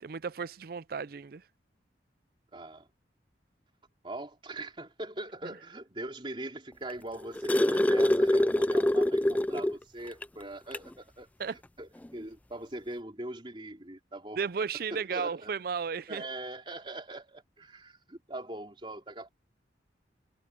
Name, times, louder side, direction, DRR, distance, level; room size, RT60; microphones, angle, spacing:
voice 1, 0.0-1.4 11.4-11.6 14.4-16.2, right 6 dB, 55° right, 0.4 m, -34 dB
voice 2, 2.5-2.9 4.0-11.3 11.8-14.4 14.9-15.5 16.1-19.3, right 1 dB, 30° right, 3.5 m, -41 dB
sound 1, 6.9-9.8 10.2-10.3 10.7-10.9 12.0-12.1, left 1 dB, 10° left, 0.3 m, -25 dB
head